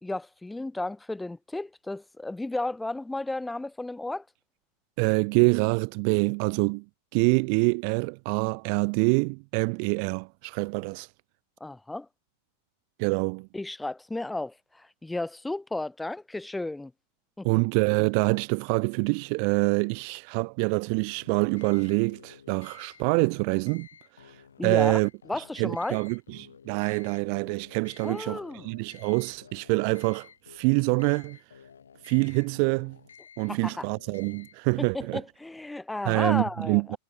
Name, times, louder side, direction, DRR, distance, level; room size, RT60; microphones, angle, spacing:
voice 1, 0.0-4.3 11.6-12.1 13.5-16.9 17.4-17.5 24.6-25.0 25.3-26.0 28.0-28.7 33.5-33.9 34.8-37.0, left 2 dB, 5° left, 0.9 m, -33 dB
voice 2, 5.0-6.8 7.1-11.1 13.0-13.5 17.4-23.9 24.6-25.1 25.6-31.4 32.1-33.0 33.4-35.2 36.1-37.0, right 40 dB or more, 45° right, 0.3 m, -26 dB
sound 1, 21.1-34.6, left 7 dB, 70° left, 2.5 m, -53 dB
figure-of-eight pair, 90°, 0 cm